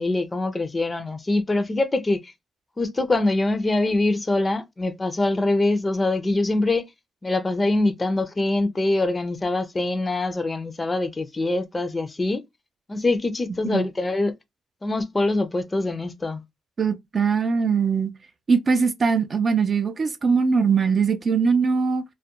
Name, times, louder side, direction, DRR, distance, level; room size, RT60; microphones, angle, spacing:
voice 1, 0.0-2.3 2.8-6.9 7.2-12.4 12.9-14.3 14.8-16.4, left 2 dB, 25° left, 0.4 m, -24 dB
voice 2, 16.8-18.1 18.5-22.0, right 5 dB, 40° right, 0.4 m, -21 dB
2.3 x 2.1 x 2.8 m
cardioid pair, 90°, 0 cm